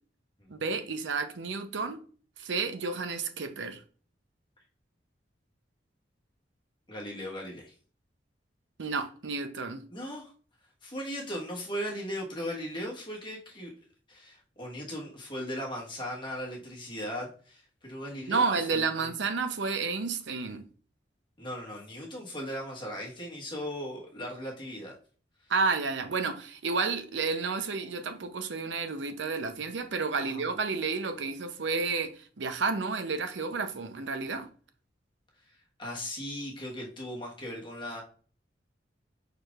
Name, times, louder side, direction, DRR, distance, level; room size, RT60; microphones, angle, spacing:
voice 1, 0.5-2.0 2.4-3.8 8.8-9.8 18.3-20.6 25.5-32.1 32.4-34.5, right 4 dB, 80° right, 0.7 m, -31 dB
voice 2, 6.9-7.7 9.9-10.3 10.8-13.7 14.1-19.1 21.4-24.9 30.1-30.4 35.8-38.0, equal, 25° left, 1.4 m, -38 dB
4.8 x 4.5 x 2.4 m
head